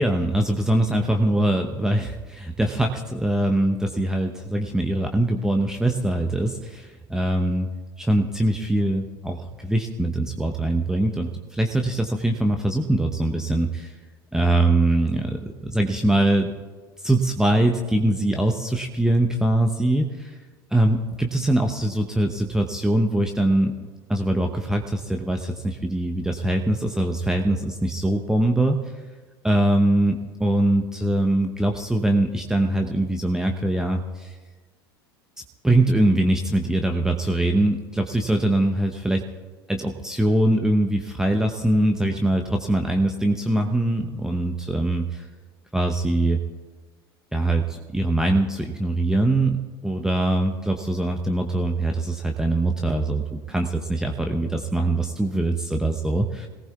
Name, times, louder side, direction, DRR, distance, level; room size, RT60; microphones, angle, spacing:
voice 1, 0.0-7.7 8.0-13.9 14.3-16.5 17.0-20.4 20.7-23.7 24.1-28.8 29.4-34.4 35.6-39.2 39.7-45.2 45.7-46.4 47.3-56.5, right 1 dB, 5° right, 3 dB, 0.9 m, -22 dB
26.5 x 18.0 x 2.4 m, 1.4 s
figure-of-eight pair, 75°, 13 cm